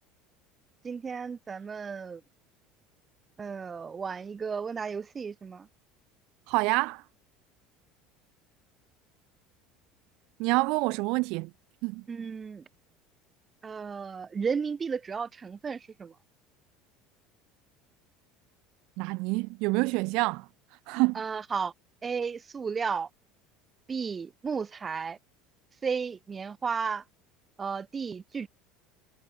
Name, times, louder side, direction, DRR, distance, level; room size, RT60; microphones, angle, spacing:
voice 1, 0.8-2.2 3.4-5.7 12.1-12.6 13.6-16.1 21.1-21.7 22.0-23.1 23.9-25.2 25.8-27.0 27.6-28.5, right 5 dB, 25° right, 2.0 m, -33 dB
voice 2, 6.5-7.0 10.4-11.5 11.8-12.0 19.0-20.4 20.9-21.2, right 26 dB, 70° right, 0.7 m, -27 dB
supercardioid pair, 110°, 0 cm